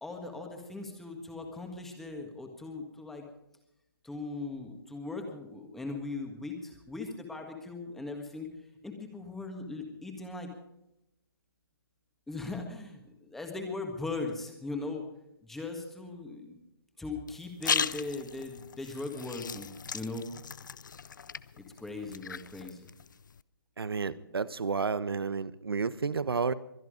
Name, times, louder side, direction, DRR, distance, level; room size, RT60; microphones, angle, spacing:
voice 1, 0.0-3.2 4.0-8.5 8.8-10.5 12.3-15.0 15.4-16.6 17.0-20.3 21.6-22.9, left 3 dB, ahead, 4 dB, 1.6 m, -39 dB
sound 1, 17.3-23.4, left 6 dB, 55° left, 0.6 m, -37 dB
voice 2, 23.8-26.5, right 5 dB, 75° right, 16 dB, 1.1 m, -31 dB
23.5 x 10.5 x 5.1 m, 0.86 s
hypercardioid pair, 165°, 13 cm